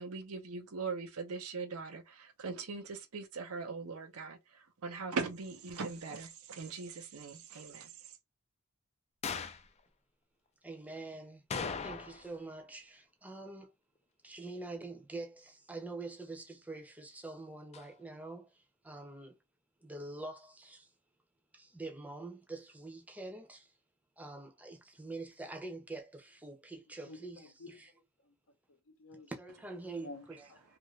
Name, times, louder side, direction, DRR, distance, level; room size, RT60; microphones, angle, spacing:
voice 1, 0.0-4.4 4.8-7.9, right 4 dB, 90° right, 0.7 m, -40 dB
sound 1, 9.2-9.7 11.5-12.4 12.6-12.7 17.7-17.9, left 5 dB, 30° left, 0.4 m, -38 dB
voice 2, 10.6-11.4 11.8-13.7 14.2-18.5 18.8-19.3 19.8-20.9 21.5-23.7 24.2-27.4 29.3-30.1, right 2 dB, 5° right, 0.6 m, -45 dB
voice 3, 26.9-28.4 28.7-29.3 29.9-30.6, left 2 dB, 70° left, 0.7 m, -52 dB
2.8 x 2.5 x 3.1 m
head